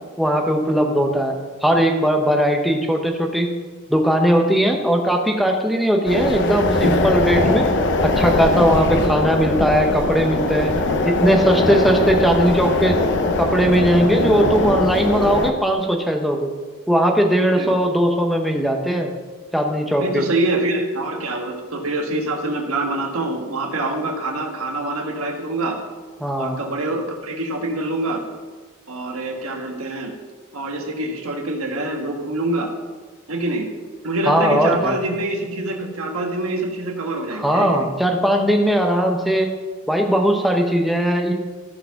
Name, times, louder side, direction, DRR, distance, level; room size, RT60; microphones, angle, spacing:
voice 1, 0.2-1.3 1.6-3.5 3.9-7.6 8.0-10.7 11.0-13.0 13.4-16.5 16.9-19.1 19.5-20.2 26.2-26.6 34.3-34.9 37.3-39.5 39.9-41.3, equal, ahead, 1 dB, 0.8 m, -19 dB
sound 1, 6.0-15.5, left 2 dB, 55° left, 0.7 m, -21 dB
voice 2, 20.0-25.8 26.4-28.2 28.9-30.1 30.5-32.7 33.3-33.7 34.0-37.9, right 2 dB, 75° right, 2 dB, 1.5 m, -25 dB
13.5 x 4.6 x 5.8 m, 1.4 s
head